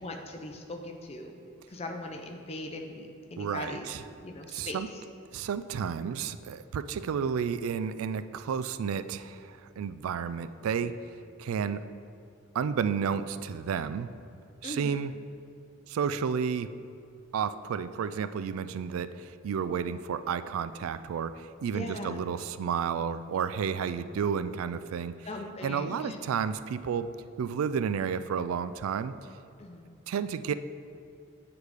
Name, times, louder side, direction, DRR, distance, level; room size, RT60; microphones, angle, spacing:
voice 1, 0.0-1.4 1.7-3.9 4.2-4.8 14.6-15.0 21.7-22.2 25.2-26.2 29.6-29.9, left 2 dB, 30° left, 3 dB, 0.6 m, -39 dB
voice 2, 3.4-4.0 4.5-4.9 5.3-11.0 11.4-11.8 12.5-14.1 14.6-15.1 15.9-16.7 17.3-25.2 25.6-27.1 27.4-29.1 30.1-30.5, right 7 dB, 85° right, 13 dB, 0.3 m, -31 dB
8.4 x 4.8 x 4.9 m, 2.5 s
head